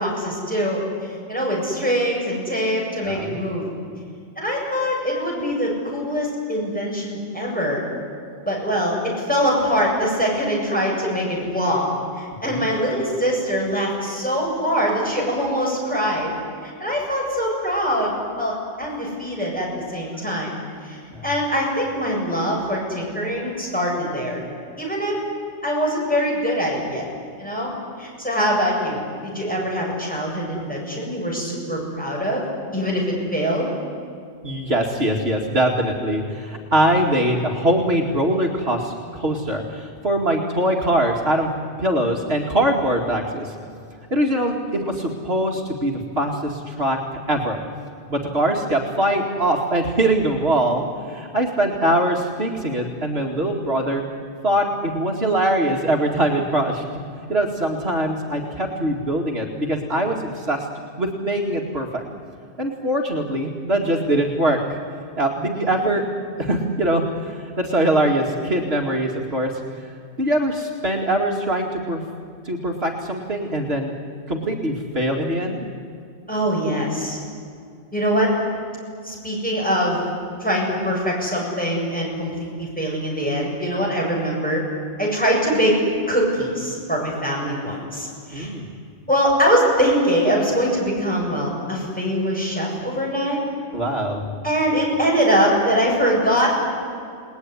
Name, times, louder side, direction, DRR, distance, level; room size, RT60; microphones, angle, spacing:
voice 1, 0.0-3.7 4.4-7.8 8.4-11.9 12.2-16.3 16.6-20.5 20.8-24.4 24.8-25.2 25.6-27.1 27.4-27.7 28.0-32.4 32.7-33.7 76.3-77.2 77.9-78.3 79.0-80.0 80.4-84.6 85.0-85.8 86.1-88.5 89.1-93.4 94.4-96.6, equal, 5° left, -3 dB, 7.7 m, -23 dB
voice 2, 3.0-3.4 12.4-12.7 21.1-21.2 34.4-41.5 41.8-43.5 44.1-47.0 47.3-47.6 48.1-54.0 54.4-56.9 57.3-60.7 61.0-62.0 62.6-64.8 65.2-66.0 66.4-69.5 70.2-72.0 72.4-73.9 74.3-75.6 88.3-88.7 93.7-94.2, right 1 dB, 60° right, 0 dB, 2.6 m, -22 dB
29.5 x 19.5 x 9.9 m, 2.4 s
omnidirectional pair, 1.2 m